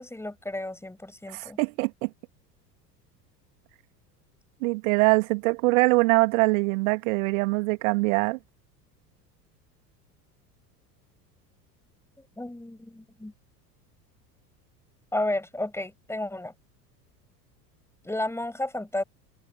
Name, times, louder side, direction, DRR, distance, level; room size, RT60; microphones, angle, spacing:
voice 1, 0.0-1.6 12.4-13.3 15.1-16.5 18.0-19.0, left 1 dB, 5° left, 7.1 m, -32 dB
voice 2, 1.3-2.1 4.6-8.4, right 26 dB, 55° right, 2.6 m, -23 dB
figure-of-eight pair, 75°, 49 cm